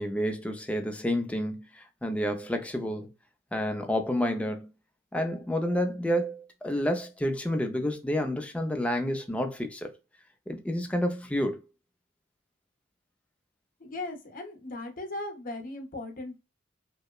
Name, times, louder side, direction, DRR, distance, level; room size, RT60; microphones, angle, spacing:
voice 1, 0.0-3.1 3.5-4.7 5.1-9.9 10.5-11.6, equal, 5° left, 0.3 m, -29 dB
voice 2, 13.8-16.4, left 2 dB, 45° left, 0.6 m, -38 dB
2.8 x 2.0 x 2.2 m
head